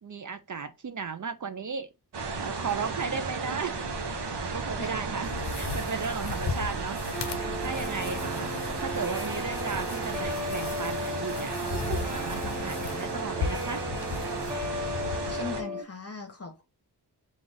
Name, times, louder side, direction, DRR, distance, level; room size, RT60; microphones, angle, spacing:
voice 1, 0.0-1.9 2.2-3.9 4.2-5.3 5.6-7.0 7.4-13.8, right 5 dB, 50° right, 0.4 m, -35 dB
sound 1, 2.1-15.6, right 4 dB, 85° right, 0.7 m, -34 dB
sound 2, 5.0-15.3, left 5 dB, 80° left, 0.6 m, -38 dB
Guitar, 7.1-15.8, left 1 dB, 10° right, 1.2 m, -36 dB
voice 2, 15.3-16.6, left 4 dB, 35° left, 1.0 m, -38 dB
3.8 x 2.4 x 3.4 m
wide cardioid pair, 55°, 40 cm